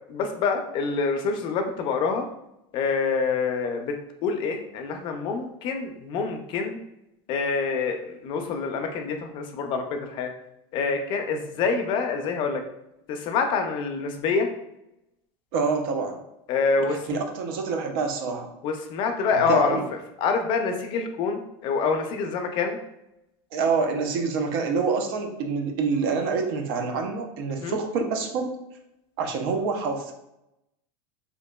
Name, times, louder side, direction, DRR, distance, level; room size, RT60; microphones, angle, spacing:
voice 1, 0.1-2.3 2.7-6.8 7.3-10.3 10.7-12.6 13.1-14.5 16.5-17.2 18.6-22.8 27.6-27.8, left 5 dB, 40° left, 5 dB, 0.4 m, -26 dB
voice 2, 15.5-16.2 16.9-18.5 19.5-19.8 23.5-28.5 29.2-30.1, right 4 dB, 70° right, 5 dB, 0.5 m, -26 dB
2.8 x 2.5 x 2.2 m, 0.86 s
supercardioid pair, 150°, 13 cm